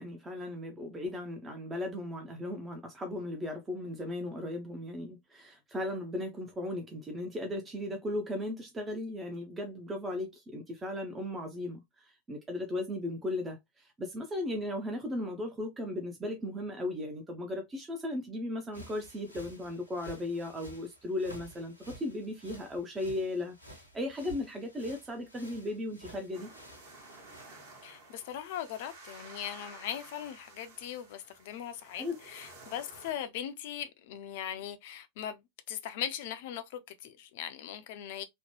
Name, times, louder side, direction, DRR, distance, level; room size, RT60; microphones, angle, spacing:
voice 1, 0.0-26.5 32.0-32.2, left 1 dB, 15° right, 0.6 m, -36 dB
sound 1, 18.7-27.4, right 1 dB, 85° left, 0.9 m, -52 dB
sound 2, 26.3-33.1, right 2 dB, 50° right, 1.3 m, -52 dB
voice 2, 27.8-38.2, left 10 dB, 50° left, 0.5 m, -40 dB
3.0 x 2.1 x 3.0 m
figure-of-eight pair, 90°, 0 cm